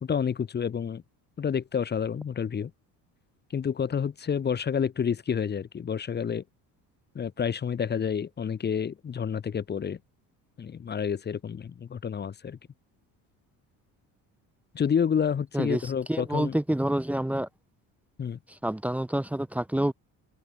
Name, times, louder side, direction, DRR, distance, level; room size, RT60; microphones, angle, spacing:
voice 1, 0.0-1.0 1.4-2.7 3.5-6.4 7.1-10.0 10.6-12.6 14.7-16.5 18.2-18.4, left 7 dB, 30° left, 2.5 m, -29 dB
voice 2, 15.5-17.5 18.5-19.9, right 1 dB, 5° right, 2.3 m, -28 dB
cardioid pair, 160°, 35 cm